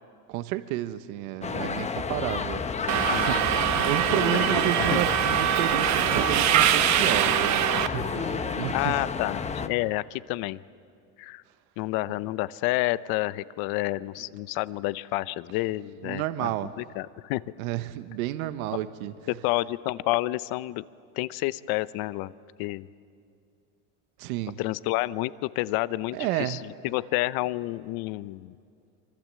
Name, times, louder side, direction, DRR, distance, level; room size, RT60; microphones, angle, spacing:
voice 1, 0.3-2.7 3.1-3.4 3.8-9.0 16.0-16.7 17.6-19.1 24.2-24.6 26.1-26.6, right 14 dB, 75° right, 11 dB, 1.2 m, -31 dB
sound 1, 1.4-9.7, left 5 dB, 15° left, 0.9 m, -31 dB
Subway metro underground, 2.9-7.9, right 11 dB, 40° right, 1.1 m, -23 dB
voice 2, 4.1-5.0 8.7-10.6 11.2-11.4 11.8-16.5 16.8-17.4 19.3-20.8 21.2-22.3 22.6-22.9 24.6-26.6 26.8-28.5, left 18 dB, 55° left, 17 dB, 0.8 m, -29 dB
25.0 x 25.0 x 7.6 m, 2.4 s
supercardioid pair, 130°, 44 cm